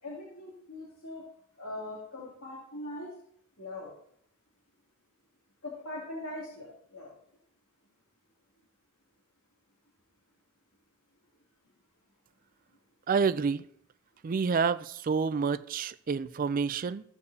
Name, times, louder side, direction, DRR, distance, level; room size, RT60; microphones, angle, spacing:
voice 1, 0.0-1.2 1.6-3.1 3.6-3.9 5.6-7.1, left 1 dB, 75° left, 2.7 m, -41 dB
voice 2, 13.1-13.6 14.2-17.0, right 5 dB, 40° right, 0.3 m, -28 dB
15.5 x 6.7 x 2.8 m
head